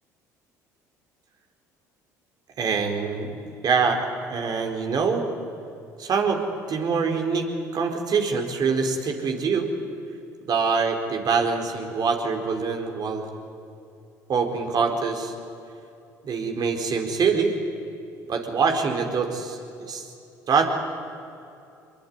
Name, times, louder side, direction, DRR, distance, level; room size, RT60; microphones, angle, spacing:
voice 1, 2.6-3.3 3.6-5.2 6.0-6.4 6.7-7.5 7.7-9.7 10.5-13.3 14.3-15.3 16.2-17.5 18.3-19.6 19.9-20.1 20.5-20.6, right 5 dB, 50° right, 4 dB, 4.2 m, -24 dB
24.5 x 21.5 x 9.6 m, 2.6 s
hypercardioid pair, 65°, 9 cm